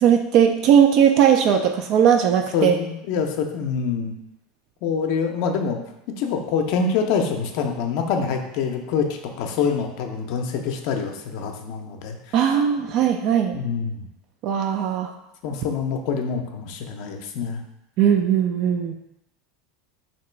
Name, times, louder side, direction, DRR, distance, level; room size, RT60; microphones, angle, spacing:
voice 1, 0.0-2.8 12.3-13.6 14.4-15.1 18.0-19.0, right 8 dB, 50° right, 4 dB, 0.3 m, -18 dB
voice 2, 2.5-4.1 4.8-5.8 6.2-12.6 13.5-14.1 15.4-17.6, left 6 dB, 60° left, 4 dB, 0.5 m, -25 dB
2.9 x 2.8 x 4.4 m, 0.85 s
supercardioid pair, 125°, 0 cm